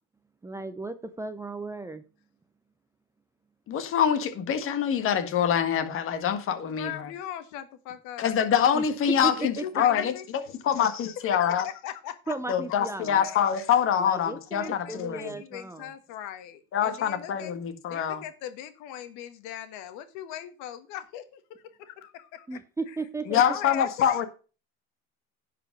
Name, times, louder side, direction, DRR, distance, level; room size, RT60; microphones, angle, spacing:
voice 1, 0.4-2.0 8.7-8.8 9.2-9.6 12.3-13.3 14.0-15.9 22.5-23.6, right 3 dB, 10° right, 0.6 m, -35 dB
voice 2, 3.7-7.1 8.2-11.7 12.5-15.3 16.7-18.2 23.3-24.3, left 8 dB, 45° left, 1.8 m, -25 dB
voice 3, 6.7-8.4 9.3-10.6 11.2-12.3 13.2-13.5 14.6-17.5 17.9-22.6 22.9-23.0 23.2-24.3, left 11 dB, 70° left, 1.7 m, -40 dB
10.5 x 5.1 x 6.2 m
cardioid pair, 140°, 31 cm